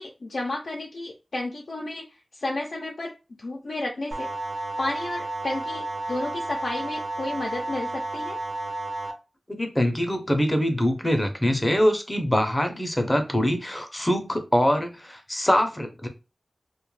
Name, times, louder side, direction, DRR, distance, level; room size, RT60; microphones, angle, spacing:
voice 1, 0.0-2.1 2.4-3.1 3.4-4.3 4.8-8.4, left 2 dB, 65° left, -1 dB, 0.4 m, -32 dB
sound 1, 4.1-9.1, right 2 dB, 30° right, 0.5 m, -32 dB
voice 2, 9.5-16.1, equal, 15° left, 5 dB, 0.5 m, -24 dB
2.2 x 2.0 x 3.1 m, 0.28 s
wide cardioid pair, 95°, 0 cm